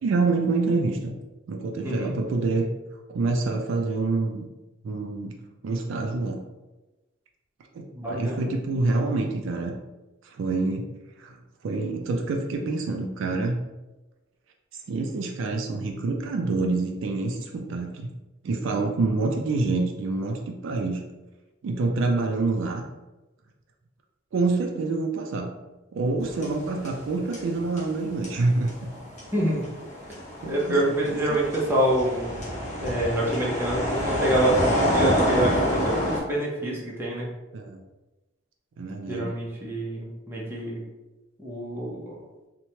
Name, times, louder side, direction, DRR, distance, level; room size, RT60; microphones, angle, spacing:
voice 1, 0.0-1.2 1.5-2.7 3.1-4.5 4.8-5.4 5.6-6.4 7.7-9.8 10.2-10.9 11.2-11.4 11.6-13.6 14.9-18.1 18.4-21.0 21.6-22.8 24.3-25.5 25.9-28.9 30.4-31.4 37.5-37.8 38.8-39.3, right 3 dB, 65° right, 2 dB, 0.3 m, -27 dB
voice 2, 1.8-2.1 7.9-8.5 29.3-29.6 30.5-32.4 32.8-37.3 39.1-40.8 41.4-42.2, right 1 dB, 10° right, -5 dB, 0.5 m, -26 dB
sound 1, 26.2-27.1 27.3-36.2, equal, 35° left, 0.8 m, -27 dB
3.0 x 2.1 x 2.7 m, 1.1 s
head